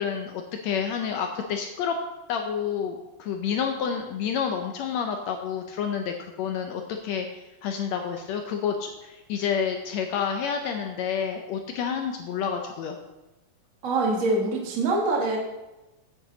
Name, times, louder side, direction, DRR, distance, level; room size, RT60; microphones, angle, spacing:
voice 1, 0.0-2.0 2.3-13.0, left 7 dB, 75° left, 4 dB, 1.6 m, -29 dB
voice 2, 13.8-15.4, right 2 dB, 40° right, 0 dB, 1.2 m, -24 dB
9.0 x 8.4 x 3.9 m, 1.0 s
omnidirectional pair, 3.7 m